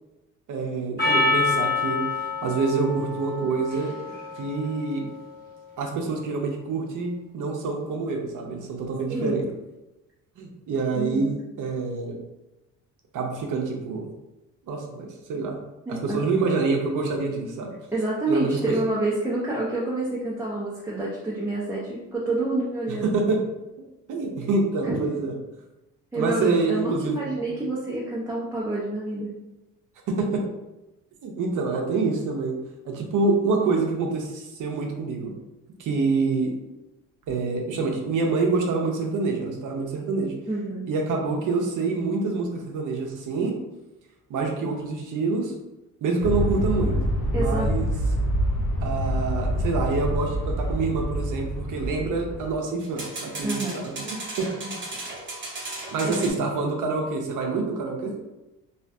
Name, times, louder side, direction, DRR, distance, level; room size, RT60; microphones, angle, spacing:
voice 1, 0.5-2.0 2.4-4.0 4.4-5.1 5.8-9.5 10.4-12.2 13.1-14.1 14.7-15.6 15.9-17.7 18.3-18.7 22.9-23.4 24.1-25.3 26.1-27.6 30.1-30.4 31.2-32.6 32.9-35.3 35.8-36.5 37.3-40.3 40.9-43.5 44.3-45.5 46.0-47.0 47.3-47.9 48.8-54.8 55.9-58.1, right 3 dB, 65° right, 1 dB, 0.6 m, -26 dB
Percussion, 1.0-5.6, left 3 dB, 25° left, 1.2 m, -27 dB
voice 2, 10.9-11.3 15.9-16.3 17.9-23.2 24.8-25.0 26.1-29.3 40.5-40.8 47.3-47.9 53.4-53.8 56.1-56.4, right 2 dB, 10° right, -7 dB, 0.5 m, -28 dB
Aircraft, 46.2-52.5, equal, 70° left, 0.7 m, -26 dB
sound 1, 49.9-50.1 52.8-56.3, right 2 dB, 35° right, 0.8 m, -36 dB
2.5 x 2.4 x 2.2 m, 0.99 s
cardioid pair, 80°, 33 cm